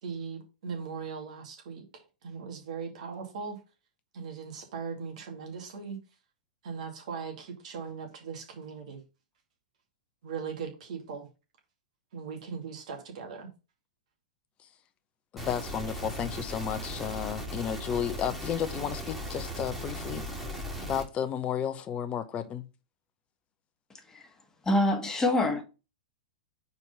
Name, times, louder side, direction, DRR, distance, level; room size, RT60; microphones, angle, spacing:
voice 1, 0.0-1.8 2.2-3.6 4.1-6.0 6.6-9.0 10.2-11.3 12.1-13.5, right 6 dB, 65° right, 2.2 m, -39 dB
voice 2, 15.3-22.7, left 8 dB, 30° left, 0.8 m, -33 dB
sound 1, 15.4-21.0, equal, 5° right, 2.1 m, -37 dB
voice 3, 24.6-25.6, left 1 dB, 15° left, 1.5 m, -25 dB
4.7 x 4.1 x 5.5 m
hypercardioid pair, 110°, 4 cm